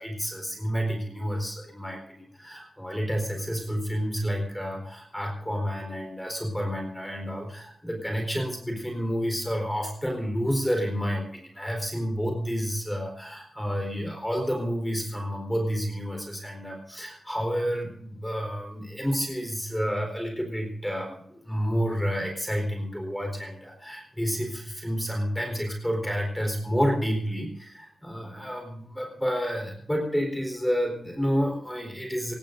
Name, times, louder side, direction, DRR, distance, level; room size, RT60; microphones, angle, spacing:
voice 1, 0.0-32.3, equal, 5° left, 2 dB, 4.2 m, -30 dB
24.0 x 20.5 x 2.6 m, 0.64 s
wide cardioid pair, 160°, 0 cm